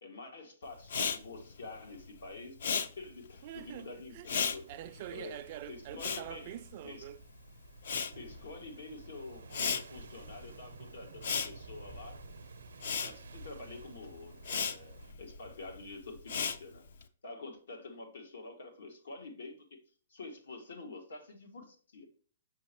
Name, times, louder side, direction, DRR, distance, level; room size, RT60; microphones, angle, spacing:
voice 1, 0.0-4.6 5.1-5.3 5.7-6.5 6.8-7.1 8.2-12.2 13.0-16.8 17.2-19.8 20.1-22.1, left 3 dB, 80° left, 1.8 m, -47 dB
Respiratory sounds, 0.8-7.3 7.6-17.0, left 6 dB, 60° left, 0.5 m, -37 dB
voice 2, 3.4-7.2, right 13 dB, 35° right, 0.3 m, -45 dB
sound 1, 4.3-15.1, right 5 dB, 85° right, 0.6 m, -53 dB
6.1 x 5.8 x 2.9 m
hypercardioid pair, 165°, 0 cm